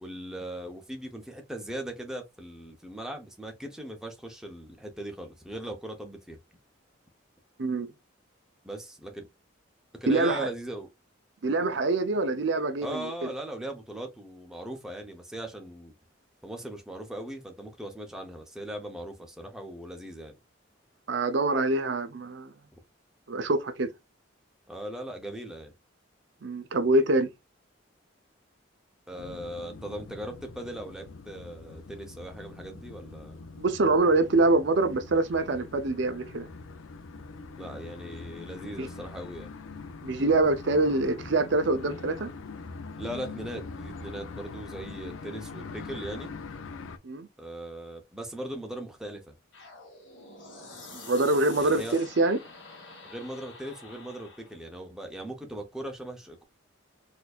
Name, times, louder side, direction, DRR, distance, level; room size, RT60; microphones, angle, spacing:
voice 1, 0.0-6.4 8.6-9.3 9.9-10.9 12.8-15.9 16.4-20.4 24.7-25.7 29.1-33.4 37.6-39.5 43.0-46.3 47.4-49.3 51.6-52.0 53.0-56.4, right 1 dB, 5° right, 0.6 m, -39 dB
voice 2, 10.1-10.5 11.4-13.1 21.1-22.5 23.3-23.9 26.4-27.3 33.6-36.5 38.8-38.9 40.0-42.3 47.0-47.3 50.9-52.4, right 2 dB, 60° right, 0.5 m, -25 dB
sound 1, 29.2-47.0, left 4 dB, 85° left, 0.5 m, -43 dB
sound 2, 49.5-54.6, left 3 dB, 70° left, 1.8 m, -47 dB
4.2 x 2.6 x 2.3 m
head